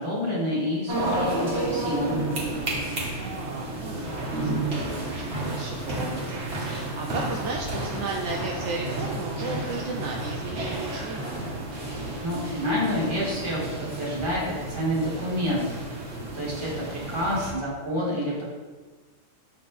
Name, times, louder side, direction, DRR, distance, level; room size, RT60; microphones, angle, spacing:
voice 1, 0.0-2.2 12.2-13.6 14.0-15.7 16.0-16.1 16.3-18.5, equal, 25° right, -7 dB, 1.8 m, -28 dB
sound 1, 0.9-17.5, right 1 dB, 55° right, 1.5 m, -31 dB
voice 2, 2.9-11.4, right 3 dB, 75° right, 1 dB, 0.9 m, -35 dB
6.7 x 4.3 x 3.3 m, 1.3 s
omnidirectional pair, 1.3 m